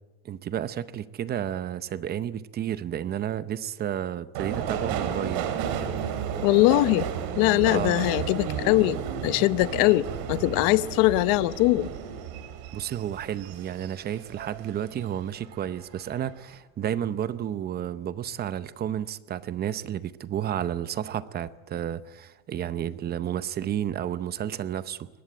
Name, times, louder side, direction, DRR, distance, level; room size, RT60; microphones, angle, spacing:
voice 1, 0.2-5.5 7.7-8.1 12.7-25.1, right 10 dB, 25° right, 0.7 m, -31 dB
Subway metro underground, 4.3-15.1 15.4-16.1 16.4-16.5, right 8 dB, 60° right, 3.1 m, -33 dB
voice 2, 6.4-7.1 7.4-9.0 9.2-11.9, left 19 dB, 60° left, 0.9 m, -21 dB
22.5 x 20.0 x 9.0 m
cardioid pair, 155°, 39 cm